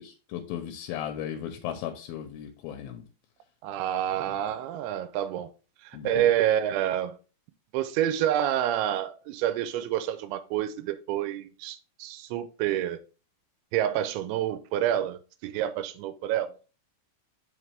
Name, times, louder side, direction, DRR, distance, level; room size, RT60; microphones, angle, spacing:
voice 1, 0.3-3.0 5.9-6.3, left 10 dB, 80° left, 2.4 m, -36 dB
voice 2, 3.6-5.5 5.8-7.2 7.7-13.0 13.7-16.5, right 11 dB, 90° right, 2.6 m, -28 dB
5.9 x 4.9 x 3.3 m
omnidirectional pair, 4.4 m